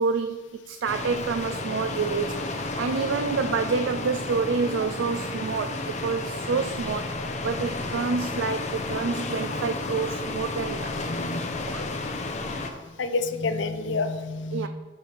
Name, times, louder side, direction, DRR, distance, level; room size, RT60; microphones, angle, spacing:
voice 1, 0.0-11.0 11.7-11.9 14.5-14.7, right 5 dB, 80° right, 8 dB, 0.4 m, -28 dB
sound 1, 0.9-12.7, left 2 dB, 40° left, 0.7 m, -32 dB
voice 2, 11.1-11.9 13.0-14.7, left 3 dB, 80° left, 9 dB, 0.6 m, -29 dB
12.5 x 4.6 x 3.4 m, 1.4 s
head